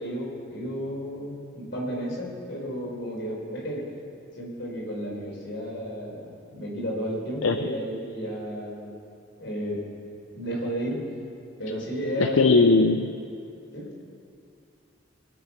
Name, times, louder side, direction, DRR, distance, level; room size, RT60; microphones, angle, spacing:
voice 1, 0.0-3.9 4.4-8.9 9.4-9.8 10.3-11.0 11.6-12.9 13.7-13.9, equal, 60° left, -3 dB, 4.5 m, -32 dB
voice 2, 12.2-13.1, left 3 dB, 75° left, 8 dB, 0.5 m, -19 dB
23.0 x 8.5 x 5.9 m, 2.5 s
head